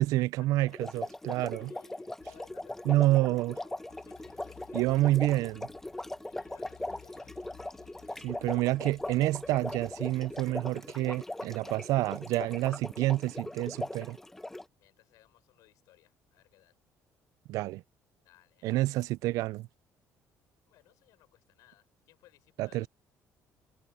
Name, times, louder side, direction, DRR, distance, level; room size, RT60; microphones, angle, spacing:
voice 1, 0.0-1.7 2.9-3.6 4.7-5.7 8.2-14.2 17.5-17.8 18.6-19.7 22.6-22.9, right 17 dB, 80° right, 0.4 m, -28 dB
sound 1, 0.7-14.6, left 1 dB, 5° left, 0.5 m, -40 dB
voice 2, 1.2-4.1 4.5-4.8 6.2-7.4 8.1-8.3 14.8-16.7 18.2-18.7 20.7-22.9, left 17 dB, 90° left, 6.7 m, -62 dB
sound 2, 2.2-10.6, left 11 dB, 55° left, 2.5 m, -58 dB
cardioid pair, 160°, 6 cm